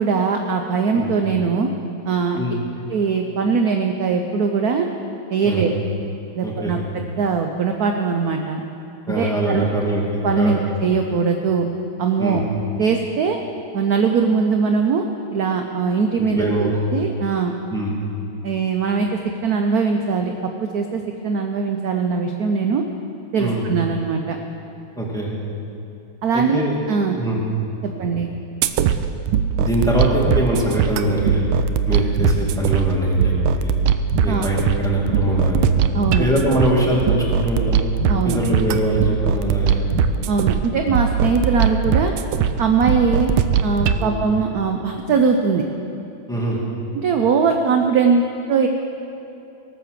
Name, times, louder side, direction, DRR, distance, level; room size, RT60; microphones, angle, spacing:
voice 1, 0.0-1.7 2.1-2.4 2.9-4.9 5.3-5.7 6.3-8.6 9.1-9.7 10.2-11.7 12.0-12.4 12.8-13.4 13.7-15.1 15.3-17.5 18.4-22.8 23.3-24.4 26.2-27.2 27.8-28.3 34.3-34.5 35.9-36.3 38.1-38.4 40.3-42.1 42.6-43.3 43.6-45.6 46.9-48.7, right 5 dB, 65° right, 4 dB, 1.0 m, -21 dB
voice 2, 6.4-6.7 9.1-10.6 12.2-12.4 16.2-16.7 17.7-17.9 23.4-23.6 25.0-25.3 26.3-26.7 27.1-27.4 29.6-31.4 31.9-33.3 33.6-33.7 34.2-35.7 36.2-37.8 38.2-39.9 41.2-41.3 44.0-44.2 46.3-46.6, right 1 dB, ahead, -4 dB, 2.0 m, -22 dB
sound 1, 28.6-44.0, right 7 dB, 90° right, 1.5 m, -21 dB
18.5 x 7.8 x 6.6 m, 2.8 s
omnidirectional pair, 2.2 m